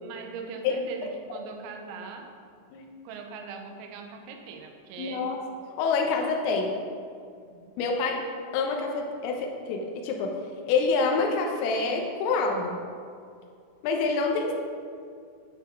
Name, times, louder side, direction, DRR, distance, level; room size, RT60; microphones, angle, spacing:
voice 1, 0.0-2.3 3.0-5.4 7.5-7.7, right 5 dB, 75° right, 4 dB, 3.1 m, -41 dB
voice 2, 5.0-5.4 5.8-6.7 7.8-8.2 8.5-10.3 10.7-12.8 13.8-14.5, left 4 dB, 80° left, 1 dB, 3.6 m, -26 dB
10.5 x 9.8 x 5.3 m, 2.3 s
omnidirectional pair, 5.9 m